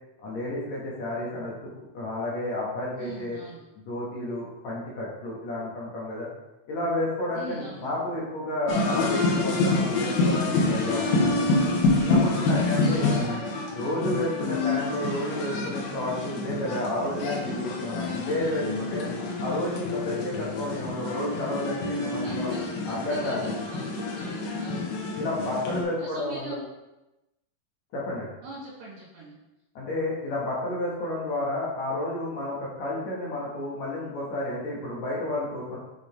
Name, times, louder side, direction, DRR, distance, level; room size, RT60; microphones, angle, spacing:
voice 1, 0.2-1.7 1.9-3.4 3.8-6.3 6.7-11.5 12.0-13.2 13.7-19.1 19.4-22.5 22.9-23.5 25.2-26.6 27.9-28.3 29.8-35.8, left 1 dB, 60° left, -5 dB, 2.3 m, -31 dB
voice 2, 3.0-3.6 7.3-7.9 12.4-13.2 22.2-24.0 24.6-25.0 26.0-26.7 28.4-29.4, right 2 dB, 65° right, -4 dB, 2.1 m, -41 dB
sound 1, 8.7-25.8, left 3 dB, 90° left, 2.8 m, -27 dB
7.0 x 5.0 x 3.3 m, 0.97 s
omnidirectional pair, 4.1 m